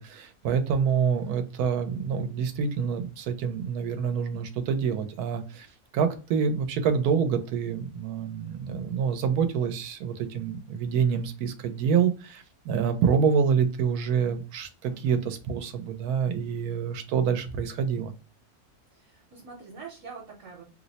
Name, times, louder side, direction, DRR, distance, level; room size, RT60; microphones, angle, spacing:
voice 1, 0.0-5.7 5.9-18.1, right 6 dB, 85° right, 1.1 m, -27 dB
voice 2, 18.9-20.6, right 5 dB, 65° right, 1.1 m, -45 dB
2.8 x 2.0 x 3.9 m
omnidirectional pair, 1.6 m